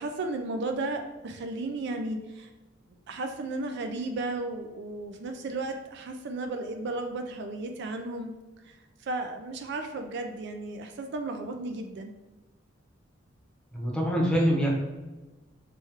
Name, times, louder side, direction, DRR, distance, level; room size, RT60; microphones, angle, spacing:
voice 1, 0.0-2.5 3.1-8.3 8.7-8.8 9.0-12.1, right 2 dB, 60° right, 5 dB, 0.4 m, -34 dB
voice 2, 13.7-14.7, equal, 5° left, -2 dB, 0.8 m, -24 dB
3.4 x 3.2 x 3.4 m, 1.2 s
head